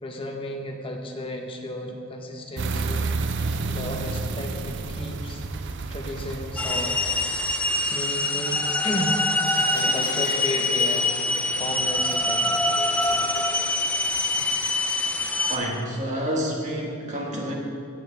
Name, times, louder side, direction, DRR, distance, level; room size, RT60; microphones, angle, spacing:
voice 1, 0.0-3.1 3.6-5.4 5.9-7.0 7.4-7.6 7.9-9.2 9.7-11.1 11.5-12.6, left 1 dB, 25° left, 1 dB, 1.0 m, -33 dB
sound 1, 2.6-7.6, right 3 dB, 50° right, 0.5 m, -30 dB
sound 2, 6.6-15.6, left 2 dB, 5° left, 0.3 m, -24 dB
sound 3, 9.4-11.0 11.3-11.6 11.9-14.5, left 2 dB, 45° left, 1.9 m, -39 dB
voice 2, 15.4-17.5, equal, 30° right, -2 dB, 1.7 m, -29 dB
16.0 x 7.9 x 3.4 m, 2.4 s
head